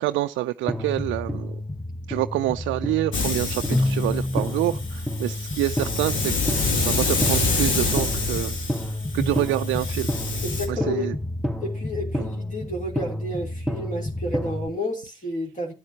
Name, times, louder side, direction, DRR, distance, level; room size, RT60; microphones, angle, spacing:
voice 1, 0.0-1.5 2.1-6.3 6.8-10.1 10.7-11.1, right 16 dB, 70° right, 0.4 m, -27 dB
sound 1, 0.7-14.7, left 1 dB, ahead, 1.0 m, -29 dB
Hiss, 3.1-10.7, left 3 dB, 70° left, 2.6 m, -27 dB
voice 2, 10.4-11.1 11.6-15.7, left 1 dB, 40° left, 3.1 m, -31 dB
13.0 x 9.6 x 2.8 m
hypercardioid pair, 40°, 21 cm